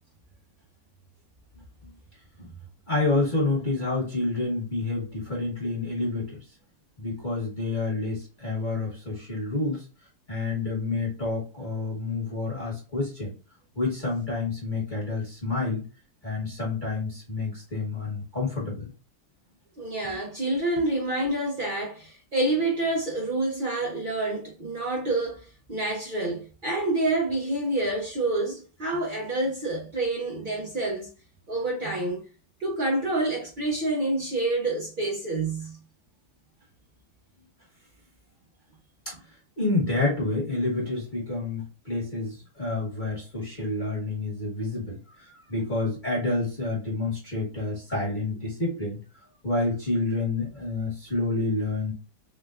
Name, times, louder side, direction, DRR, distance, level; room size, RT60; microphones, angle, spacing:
voice 1, 2.9-6.4 7.0-9.9 10.3-13.3 13.7-15.8 16.2-18.9 39.0-49.0 49.4-51.9, left 2 dB, 30° left, 1.0 m, -29 dB
voice 2, 19.8-31.1 31.5-32.2 32.6-35.8, right 2 dB, 80° right, 0.4 m, -28 dB
3.6 x 3.4 x 2.4 m
omnidirectional pair, 2.2 m